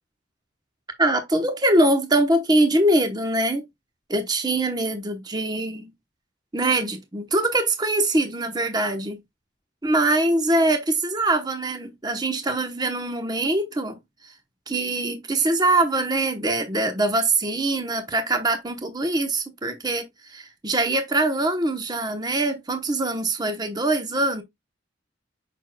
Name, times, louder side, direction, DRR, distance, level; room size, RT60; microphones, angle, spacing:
voice 1, 1.0-3.6 4.1-5.9 6.5-9.2 9.8-14.0 14.2-14.3 14.7-24.4, right 2 dB, 20° right, 1.0 m, -23 dB
7.1 x 6.0 x 2.3 m
head